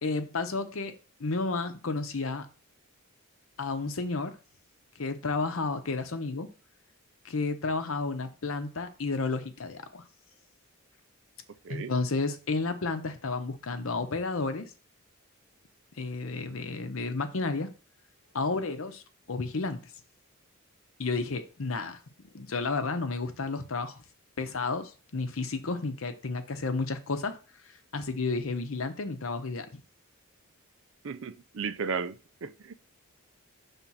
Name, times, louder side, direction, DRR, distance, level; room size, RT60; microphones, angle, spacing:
voice 1, 0.0-2.5 3.6-4.4 5.0-6.5 7.2-10.0 11.7-14.7 16.0-17.7 18.3-19.0 19.3-19.9 21.0-22.0 22.3-24.0 24.4-27.4 27.9-29.7, left 3 dB, 70° left, 0.8 m, -32 dB
voice 2, 31.0-32.7, right 5 dB, 60° right, 0.5 m, -35 dB
6.0 x 3.6 x 5.6 m
head